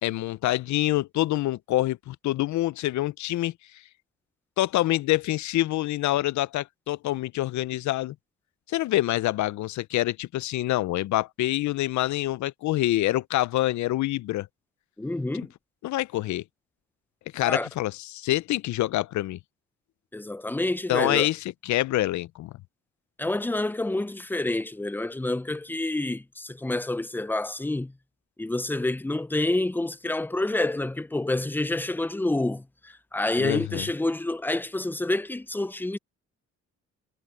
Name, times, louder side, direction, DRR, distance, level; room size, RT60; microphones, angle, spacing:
voice 1, 0.0-3.5 4.6-8.1 8.7-14.5 15.3-15.5 15.8-16.4 17.3-19.4 20.9-22.5 33.4-33.9, left 15 dB, 70° left, 0.5 m, -26 dB
voice 2, 15.0-15.5 17.4-17.7 20.1-21.3 23.2-27.9 28.4-36.0, left 2 dB, 5° left, 0.6 m, -28 dB
cardioid pair, 90°, 30 cm